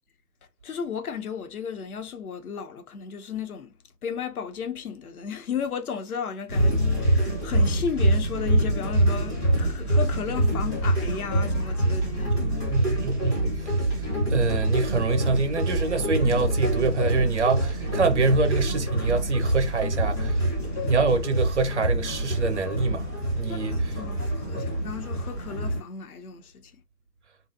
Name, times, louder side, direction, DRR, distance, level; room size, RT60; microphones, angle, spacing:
voice 1, 0.6-3.8 4.0-12.5 23.5-26.7, left 6 dB, 60° left, 0.7 m, -34 dB
sound 1, 6.5-25.8, right 1 dB, 10° left, 0.7 m, -25 dB
voice 2, 12.7-13.5 14.3-20.4 20.9-23.1 23.3-23.7 24.5-24.7, right 3 dB, 45° right, 0.5 m, -25 dB
2.6 x 2.0 x 2.4 m
hypercardioid pair, 155°, 50 cm